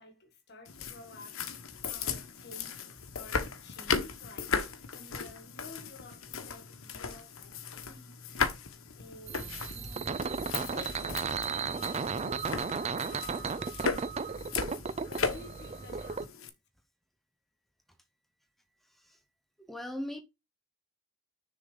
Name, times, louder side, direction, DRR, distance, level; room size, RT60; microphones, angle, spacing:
voice 1, 0.0-1.4 1.9-8.3 8.9-9.9 10.6-14.3 15.0-16.5, left 2 dB, 50° left, 1.8 m, -52 dB
sound 1, 0.7-16.5, left 5 dB, 70° left, 1.1 m, -37 dB
sound 2, 9.3-16.3, right 5 dB, 30° right, 0.4 m, -35 dB
voice 2, 18.9-19.2 19.6-20.2, left 1 dB, ahead, 0.7 m, -39 dB
6.6 x 3.8 x 5.1 m
head